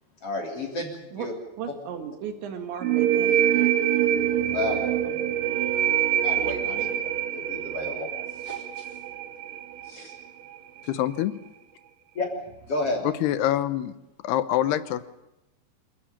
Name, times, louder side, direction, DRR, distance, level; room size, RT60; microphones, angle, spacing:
voice 1, 0.2-1.3 4.5-4.8 5.0-5.2 6.2-6.9 7.3-8.1 8.3-8.9 9.8-10.2 12.2-12.3 12.7-13.0, left 2 dB, 35° left, 1 dB, 4.0 m, -31 dB
voice 2, 1.6-3.4, right 8 dB, 90° right, 7 dB, 4.4 m, -35 dB
sound 1, 2.8-10.2, right 10 dB, 60° right, 2.8 m, -25 dB
voice 3, 10.9-11.3 13.0-13.9 14.2-15.0, left 12 dB, 75° left, 14 dB, 2.8 m, -25 dB
26.5 x 14.0 x 8.7 m, 0.97 s
omnidirectional pair, 5.0 m